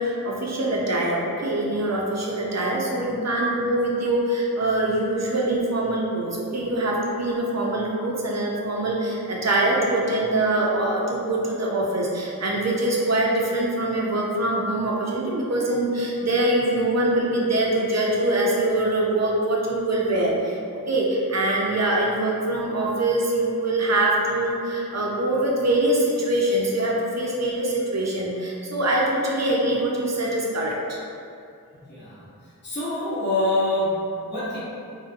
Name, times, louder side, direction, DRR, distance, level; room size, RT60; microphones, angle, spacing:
voice 1, 0.0-31.0, right 1 dB, 50° right, -3 dB, 0.5 m, -23 dB
voice 2, 31.9-32.2 32.6-34.6, left 1 dB, 30° left, -10 dB, 0.7 m, -25 dB
2.6 x 2.1 x 2.5 m, 2.5 s
wide cardioid pair, 40°, 35 cm